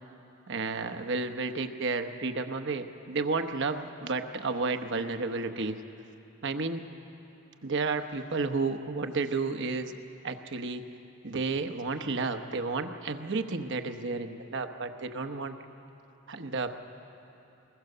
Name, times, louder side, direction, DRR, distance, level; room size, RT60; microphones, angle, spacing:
voice 1, 0.5-5.8 6.4-6.8 7.6-9.9 10.2-10.8 11.2-15.6 16.3-16.8, right 3 dB, 60° right, 7 dB, 1.0 m, -32 dB
23.0 x 20.5 x 6.8 m, 3.0 s
head